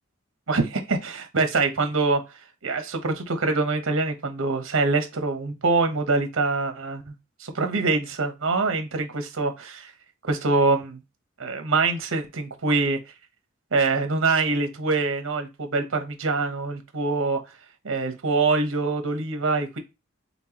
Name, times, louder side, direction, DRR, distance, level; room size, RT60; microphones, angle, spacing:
voice 1, 0.5-7.1 7.4-9.9 10.2-11.0 11.4-13.0 13.7-17.4 17.8-19.8, right 3 dB, 80° right, 1.0 m, -24 dB
4.4 x 3.6 x 2.9 m
head